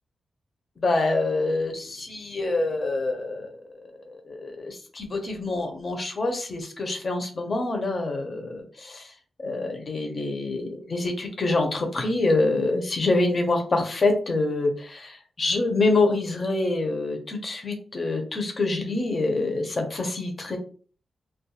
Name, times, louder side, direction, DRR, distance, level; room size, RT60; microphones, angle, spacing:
voice 1, 0.8-3.5 4.1-9.1 9.4-20.6, left 2 dB, 35° left, 4 dB, 0.6 m, -26 dB
2.3 x 2.2 x 2.7 m, 0.41 s
wide cardioid pair, 160°, 0 cm